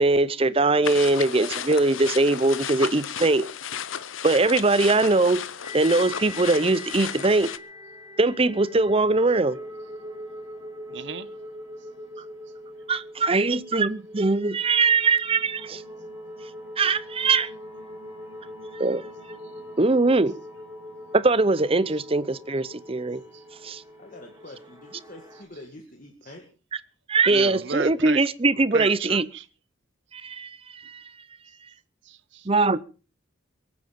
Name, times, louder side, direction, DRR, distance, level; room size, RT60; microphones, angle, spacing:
voice 1, 0.0-3.5 4.2-5.4 5.7-7.5 8.2-9.6 12.9-15.8 16.8-17.5 18.7-19.1 19.8-20.4 21.1-23.2 23.6-23.8 27.1-29.3 30.1-31.0 32.5-32.8, right 3 dB, 30° right, 0.7 m, -21 dB
sound 1, 0.8-7.6, left 8 dB, 75° left, 0.8 m, -34 dB
sound 2, 5.6-25.4, equal, 10° right, 6.7 m, -42 dB
voice 2, 10.9-11.3 27.3-28.2 28.7-29.4 32.1-32.4, right 4 dB, 60° right, 1.0 m, -33 dB
voice 3, 24.0-26.5, left 1 dB, 40° left, 2.2 m, -45 dB
22.5 x 9.5 x 5.4 m
head